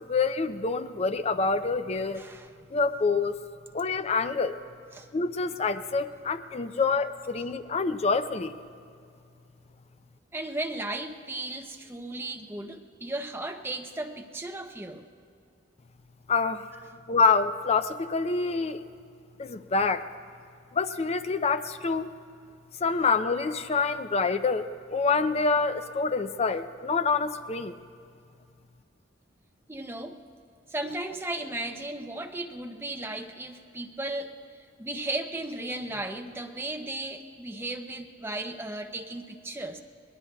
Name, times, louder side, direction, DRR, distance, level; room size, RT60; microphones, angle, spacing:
voice 1, 0.0-2.2 2.7-3.3 3.7-4.5 5.1-8.6 16.3-16.7 17.1-18.8 19.4-20.0 20.7-22.1 22.8-27.8, left 4 dB, 30° left, 10 dB, 0.4 m, -26 dB
voice 2, 2.2-2.5 4.9-5.1 10.3-15.1 29.7-30.2 30.7-39.8, right 2 dB, 10° right, 5 dB, 0.6 m, -35 dB
23.0 x 20.0 x 2.3 m, 2.4 s
head